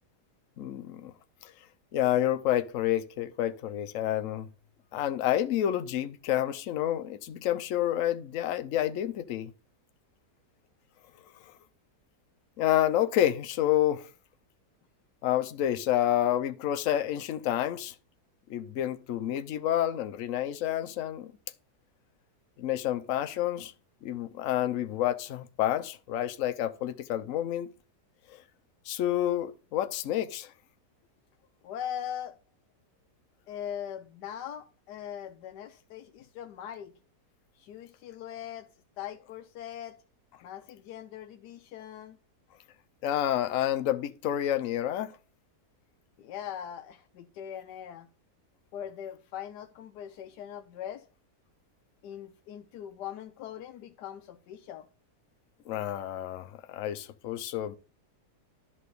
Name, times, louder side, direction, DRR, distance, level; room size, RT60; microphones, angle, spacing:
voice 1, 0.6-1.1 1.4-1.5 1.9-4.5 4.9-9.5 11.5-11.6 12.6-14.1 15.2-17.9 18.5-21.3 22.6-23.7 24.0-27.7 28.3-28.4 28.9-30.5 43.0-45.1 55.7-57.8, left 12 dB, 60° left, 1.0 m, -29 dB
voice 2, 31.6-32.4 33.5-36.9 37.5-38.7 39.0-40.0 40.4-42.2 46.2-48.1 48.7-51.0 52.0-54.9, left 10 dB, 85° left, 1.2 m, -41 dB
11.0 x 3.7 x 6.6 m
omnidirectional pair, 1.8 m